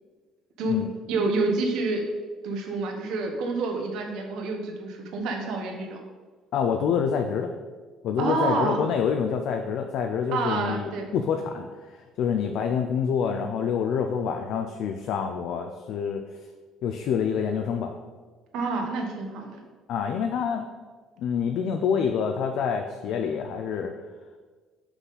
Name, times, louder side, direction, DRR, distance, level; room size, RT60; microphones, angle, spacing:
voice 1, 1.1-2.0 2.4-6.0 8.2-8.8 10.3-11.1 18.5-19.6, right 3 dB, 65° right, 3 dB, 1.1 m, -28 dB
voice 2, 6.5-7.5 8.0-16.2 16.8-18.0 19.9-20.7 21.2-23.9, left 7 dB, 55° left, 5 dB, 0.4 m, -27 dB
5.8 x 5.6 x 4.1 m, 1.4 s
cardioid pair, 160°, 0 cm